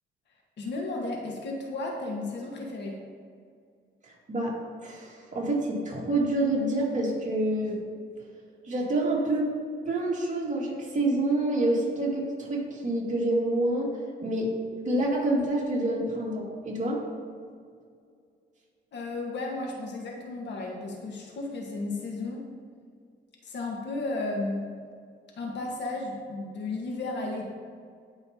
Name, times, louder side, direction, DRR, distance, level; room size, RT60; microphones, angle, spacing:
voice 1, 0.6-3.0 18.9-22.5 23.4-24.7 25.4-27.5, left 2 dB, 60° left, 0 dB, 1.6 m, -34 dB
voice 2, 4.0-4.6 4.8-7.8 8.7-9.5 9.9-13.9 14.2-14.5 14.9-17.0, right 1 dB, 40° right, -3 dB, 2.2 m, -27 dB
16.5 x 5.6 x 2.9 m, 2.2 s
cardioid pair, 90°, 20 cm